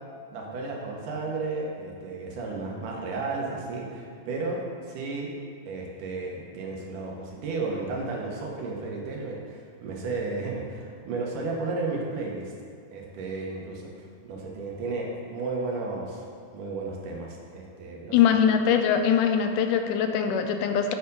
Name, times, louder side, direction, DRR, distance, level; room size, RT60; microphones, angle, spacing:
voice 1, 0.3-5.3 5.7-12.5 12.9-16.2 16.5-18.3, right 3 dB, 80° right, -1 dB, 2.6 m, -33 dB
voice 2, 18.1-20.9, left 8 dB, 85° left, 6 dB, 2.1 m, -22 dB
7.8 x 4.5 x 5.4 m, 2.2 s
omnidirectional pair, 3.6 m